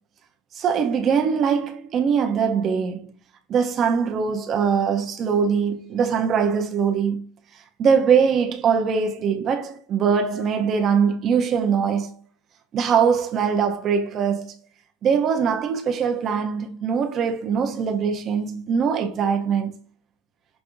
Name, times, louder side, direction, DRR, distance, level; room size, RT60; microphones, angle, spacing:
voice 1, 0.5-3.1 3.5-7.3 7.8-12.1 12.7-14.6 15.0-19.7, right 6 dB, 35° right, 0.6 m, -22 dB
5.8 x 2.6 x 2.5 m
supercardioid pair, 135°, 0 cm